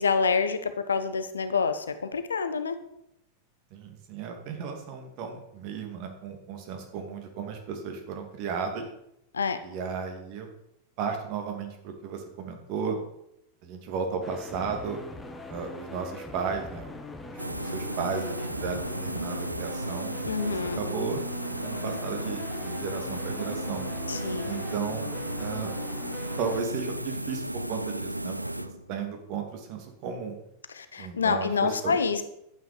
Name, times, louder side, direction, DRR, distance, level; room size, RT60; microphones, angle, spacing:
voice 1, 0.0-2.8 9.3-9.6 20.3-20.8 24.1-24.6 30.7-32.2, left 5 dB, 70° left, 10 dB, 1.1 m, -27 dB
voice 2, 3.7-8.8 9.6-10.5 11.0-13.0 13.6-15.0 15.5-16.9 17.3-21.2 21.6-23.9 24.4-25.1 25.4-25.7 26.4-30.4 31.0-32.0, right 5 dB, 45° right, 4 dB, 2.5 m, -34 dB
sound 1, 14.2-26.6, left 2 dB, 10° left, 1.5 m, -42 dB
sound 2, 17.4-29.0, right 1 dB, 85° right, 0.4 m, -34 dB
11.0 x 9.3 x 5.0 m, 0.80 s
figure-of-eight pair, 90°, 0 cm